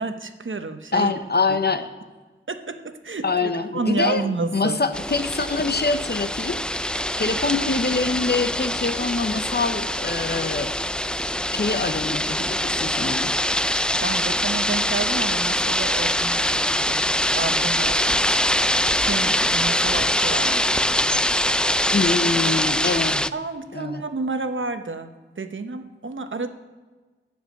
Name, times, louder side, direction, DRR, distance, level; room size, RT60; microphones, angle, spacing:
voice 1, 0.0-1.1 2.5-4.8 14.0-17.0 17.3-18.4 19.0-20.8 21.9-22.1 23.3-25.1 25.4-26.5, right 3 dB, 65° right, 8 dB, 0.9 m, -30 dB
voice 2, 0.9-1.9 3.2-6.9 7.2-10.7 11.5-13.3 21.9-23.2 23.7-24.0, left 3 dB, 50° left, 10 dB, 0.8 m, -25 dB
sound 1, 4.9-23.3, left 1 dB, 5° left, 0.3 m, -23 dB
9.2 x 7.2 x 8.4 m, 1.3 s
wide cardioid pair, 55°, 21 cm